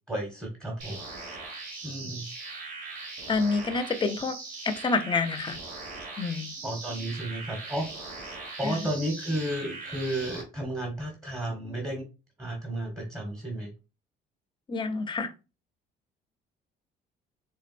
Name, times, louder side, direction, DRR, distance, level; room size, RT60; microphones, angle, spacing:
voice 1, 0.1-1.0 1.8-2.3 6.6-8.3 8.6-12.0 12.4-13.7, right 1 dB, 15° right, 0 dB, 1.4 m, -33 dB
sound 1, 0.8-10.4, right 3 dB, 55° right, 1.7 m, -40 dB
voice 2, 3.3-4.4 4.7-5.6 6.2-6.5 8.6-8.8 14.7-15.3, left 4 dB, 30° left, 9 dB, 0.7 m, -28 dB
4.5 x 3.5 x 2.5 m, 0.29 s
cardioid pair, 110°, 17 cm